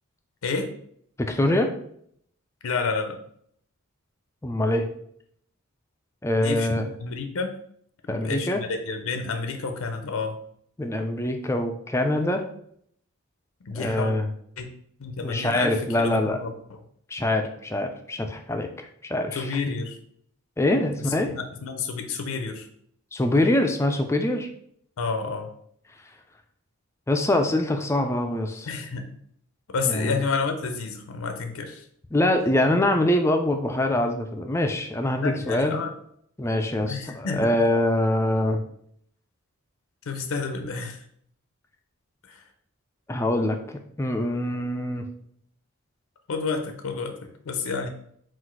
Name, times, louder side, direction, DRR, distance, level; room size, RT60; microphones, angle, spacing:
voice 1, 1.2-1.7 4.4-4.9 6.2-6.9 8.1-8.6 10.8-12.4 13.7-14.3 15.2-16.4 17.1-19.6 20.6-21.3 23.1-24.5 27.1-28.7 29.8-30.1 32.1-35.8 36.4-38.6 43.1-45.1, left 1 dB, 10° left, 5 dB, 0.3 m, -24 dB
voice 2, 2.6-3.2 6.4-7.6 8.1-10.4 13.6-14.1 14.6-14.7 15.0-16.5 19.3-20.0 21.3-22.7 25.0-25.5 28.7-29.1 29.7-31.8 35.2-35.9 36.9-37.5 40.1-41.0 42.3-42.5 46.3-47.9, left 4 dB, 75° left, 6 dB, 0.5 m, -30 dB
4.0 x 2.4 x 4.5 m, 0.67 s
head